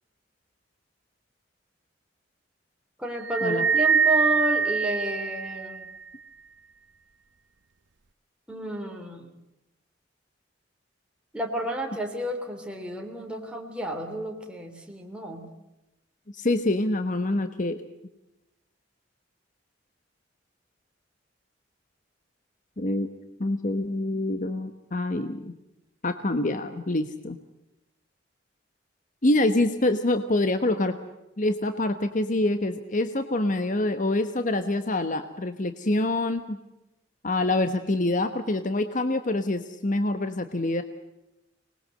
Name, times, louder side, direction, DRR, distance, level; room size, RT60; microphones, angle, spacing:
voice 1, 3.0-5.8 8.5-9.3 11.3-15.5, right 1 dB, 5° right, 1 dB, 3.2 m, -31 dB
sound 1, 3.2-5.9, right 6 dB, 70° right, 0.9 m, -24 dB
voice 2, 16.3-17.8 22.8-23.1 23.4-25.5 26.0-27.4 29.2-31.0 31.4-36.6 37.2-40.8, left 2 dB, 45° left, 9 dB, 1.2 m, -26 dB
25.5 x 20.5 x 7.8 m, 0.94 s
head